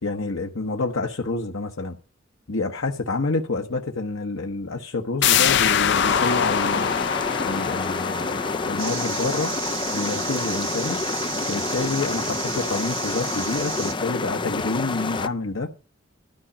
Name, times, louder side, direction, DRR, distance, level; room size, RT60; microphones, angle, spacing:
voice 1, 0.0-2.0 2.5-7.0 7.4-9.5 9.9-11.0 11.5-15.7, left 3 dB, 90° left, 1.1 m, -28 dB
sound 1, 5.2-10.7 11.0-11.1, left 8 dB, 60° left, 0.7 m, -24 dB
sound 2, 5.9-15.3, left 3 dB, 25° left, 0.5 m, -29 dB
sound 3, 8.8-13.9, right 7 dB, 80° right, 2.8 m, -33 dB
13.0 x 5.0 x 8.6 m
head